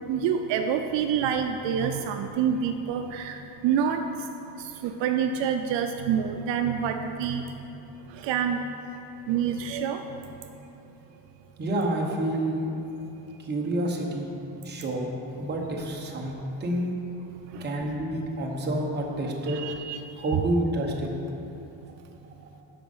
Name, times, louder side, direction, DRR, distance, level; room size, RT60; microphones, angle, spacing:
voice 1, 0.1-4.0 4.6-7.6 8.1-8.6 9.3-10.2 17.5-17.7 19.5-20.1, right 8 dB, 70° right, 6 dB, 0.6 m, -27 dB
voice 2, 11.6-12.7 13.4-14.3 14.6-15.1 15.4-16.3 16.6-16.9 17.6-19.6 20.1-21.1, right 1 dB, 20° right, -1 dB, 1.0 m, -28 dB
13.0 x 5.2 x 5.4 m, 2.8 s
cardioid pair, 180°, 46 cm